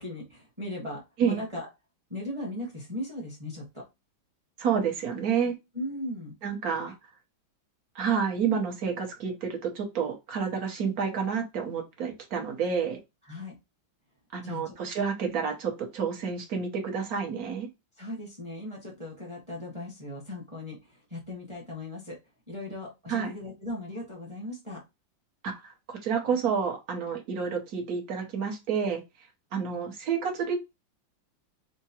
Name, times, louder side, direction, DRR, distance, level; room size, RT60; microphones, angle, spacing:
voice 1, 0.0-1.7 2.1-3.8 5.7-6.3 13.2-13.6 14.4-14.8 15.2-15.3 18.0-22.2 22.5-24.8, left 1 dB, 20° right, -2 dB, 0.9 m, -38 dB
voice 2, 4.6-5.5 6.4-7.1 7.9-13.0 14.3-17.7 23.1-23.3 25.4-29.0 29.5-30.6, right 6 dB, 55° right, 1 dB, 1.2 m, -29 dB
4.6 x 2.1 x 2.8 m, 0.23 s
omnidirectional pair, 2.1 m